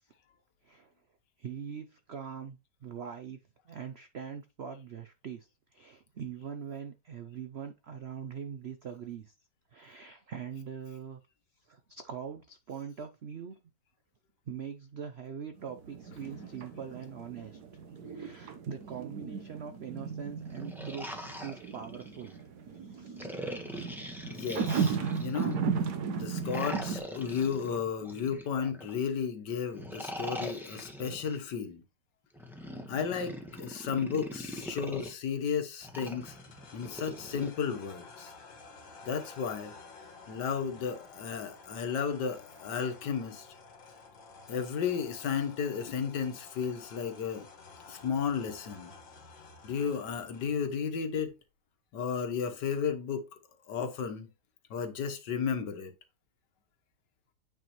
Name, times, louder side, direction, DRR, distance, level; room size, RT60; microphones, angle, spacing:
voice 1, 1.4-3.4 3.7-9.3 9.7-11.2 11.7-13.6 14.5-17.6 18.0-21.1 21.4-22.4 22.8-23.3 23.6-24.1, right 7 dB, 80° right, 0.5 m, -42 dB
sound 1, 15.6-27.0, right 6 dB, 65° right, 1.5 m, -36 dB
sound 2, 20.4-22.3 23.2-25.5 26.4-28.9 29.7-31.4 32.3-35.1 35.8-37.5, equal, ahead, 0.9 m, -42 dB
voice 2, 24.2-25.6 26.1-31.8 32.9-36.4 36.7-38.3 39.0-39.8 40.3-43.5 44.5-47.5 47.9-48.9 49.6-51.3 51.9-53.2 53.7-54.3 54.7-55.9, left 6 dB, 70° left, 1.7 m, -33 dB
sound 3, 35.8-50.6, left 4 dB, 85° left, 2.1 m, -52 dB
9.2 x 4.8 x 3.1 m
omnidirectional pair, 2.0 m